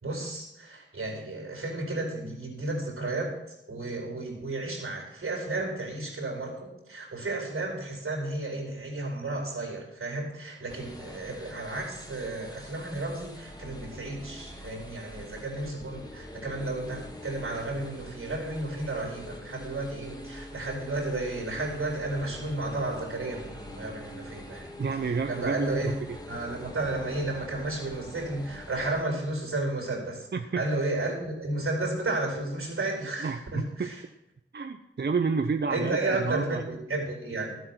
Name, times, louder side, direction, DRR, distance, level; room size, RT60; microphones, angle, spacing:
voice 1, 0.0-3.3 3.7-24.7 25.1-25.9 26.3-30.3 30.5-34.0 35.7-37.6, right 2 dB, 90° right, 0 dB, 4.4 m, -32 dB
sound 1, 10.7-29.0, left 1 dB, 20° left, 1.7 m, -44 dB
voice 2, 24.8-25.9 30.3-30.6 33.2-33.9 34.5-36.6, right 5 dB, 55° right, 7 dB, 0.7 m, -30 dB
13.5 x 8.1 x 6.1 m, 0.87 s
wide cardioid pair, 75°, 21 cm